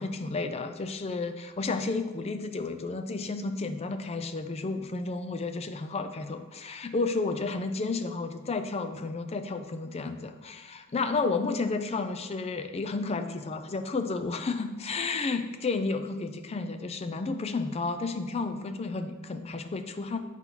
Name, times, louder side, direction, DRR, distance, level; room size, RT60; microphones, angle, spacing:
voice 1, 0.0-20.2, left 3 dB, 30° left, 8 dB, 0.4 m, -32 dB
8.0 x 4.4 x 4.0 m, 1.2 s
head